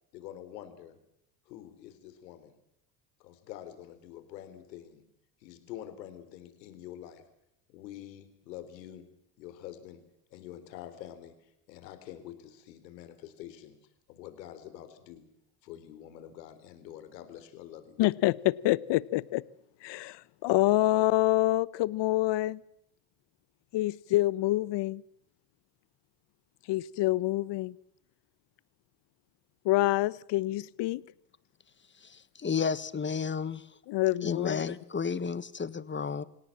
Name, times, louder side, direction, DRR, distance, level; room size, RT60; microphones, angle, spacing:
voice 1, 0.1-1.0 1.5-2.5 3.2-5.0 5.4-7.2 7.7-9.1 9.4-10.0 10.3-11.4 11.7-13.7 14.1-15.3 15.6-18.0, left 11 dB, 85° left, 4.0 m, -46 dB
voice 2, 18.0-19.4 19.8-22.6 23.7-25.0 26.7-27.7 29.6-31.0 33.9-34.7, left 17 dB, 60° left, 1.0 m, -27 dB
voice 3, 32.0-33.7 34.2-36.2, left 6 dB, 25° left, 1.5 m, -32 dB
27.5 x 18.0 x 7.4 m
supercardioid pair, 80°, 49 cm